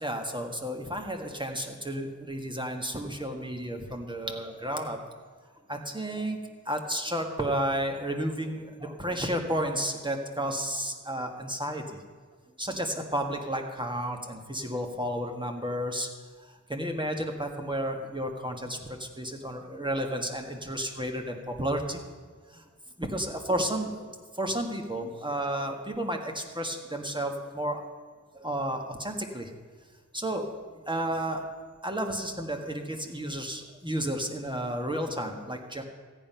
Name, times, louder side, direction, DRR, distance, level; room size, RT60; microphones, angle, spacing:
voice 1, 0.0-5.0 5.7-6.4 6.6-12.0 12.6-16.1 16.5-22.0 22.5-22.6 23.0-24.1 24.3-27.9 28.3-29.5 30.1-30.5 30.9-31.5 31.8-35.8, right 1 dB, 15° right, 3 dB, 1.5 m, -32 dB
14.0 x 9.2 x 5.6 m, 1.5 s
wide cardioid pair, 65°, 32 cm